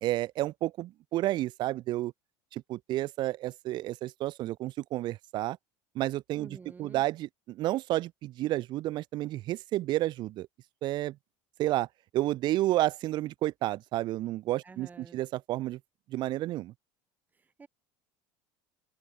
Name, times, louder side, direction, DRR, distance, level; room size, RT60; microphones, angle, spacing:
voice 1, 0.0-2.1 2.5-5.6 5.9-6.5 6.8-10.5 10.8-11.1 11.6-11.9 12.1-14.9 15.1-15.8 16.1-16.7, right 15 dB, 50° right, 1.3 m, -31 dB
voice 2, 6.3-7.0 14.6-15.2 17.3-17.7, right 4 dB, 15° right, 2.5 m, -49 dB
open air
cardioid pair, 135°, 10 cm